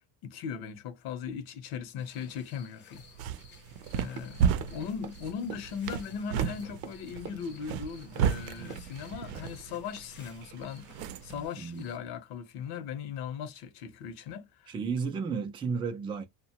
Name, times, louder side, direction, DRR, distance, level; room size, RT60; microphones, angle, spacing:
voice 1, 0.2-3.1 3.9-14.7, left 7 dB, 55° left, 0.8 m, -39 dB
sound 1, 2.0-12.0, left 6 dB, 25° left, 0.6 m, -56 dB
sound 2, 2.9-11.5, right 8 dB, 80° right, 0.6 m, -34 dB
Run, 4.1-7.8 8.2-8.3 8.6-9.0 9.3-9.5, right 7 dB, 35° right, 0.7 m, -44 dB
voice 2, 11.6-12.0 14.7-16.3, right 5 dB, 15° right, 0.3 m, -33 dB
2.8 x 2.2 x 2.8 m
cardioid pair, 150°, 45 cm